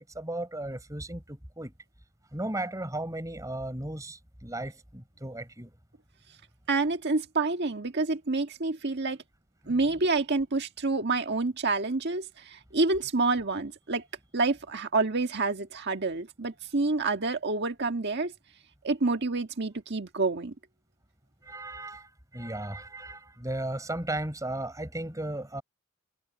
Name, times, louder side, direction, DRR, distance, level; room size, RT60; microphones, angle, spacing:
voice 1, 0.1-1.7 2.3-5.7 9.7-9.9 21.4-25.6, right 1 dB, 15° right, 4.5 m, -35 dB
voice 2, 6.7-9.2 9.7-14.0 14.3-18.3 18.8-20.5, right 3 dB, 50° right, 1.6 m, -28 dB
head